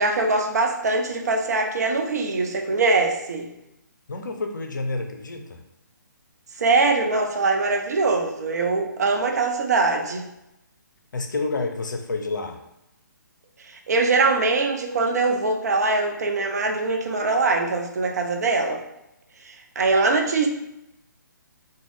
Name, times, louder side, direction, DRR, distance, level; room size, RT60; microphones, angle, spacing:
voice 1, 0.0-3.5 6.6-10.3 13.6-18.8 19.4-20.5, right 3 dB, 55° right, 3 dB, 0.6 m, -22 dB
voice 2, 4.1-5.6 11.1-12.6, left 3 dB, 70° left, 5 dB, 0.5 m, -29 dB
3.7 x 2.2 x 3.3 m, 0.86 s
figure-of-eight pair, 135°, 11 cm